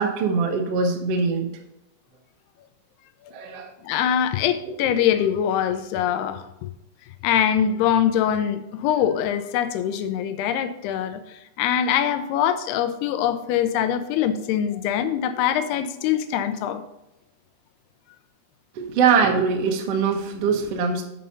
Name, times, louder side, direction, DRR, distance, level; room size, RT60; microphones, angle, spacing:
voice 1, 0.0-1.5 3.3-3.7 4.6-4.7 18.7-21.0, right 5 dB, 80° right, 3 dB, 1.4 m, -22 dB
voice 2, 3.8-6.7 7.2-16.8, left 9 dB, 85° left, 10 dB, 2.6 m, -23 dB
8.0 x 5.5 x 5.4 m, 0.88 s
omnidirectional pair, 4.7 m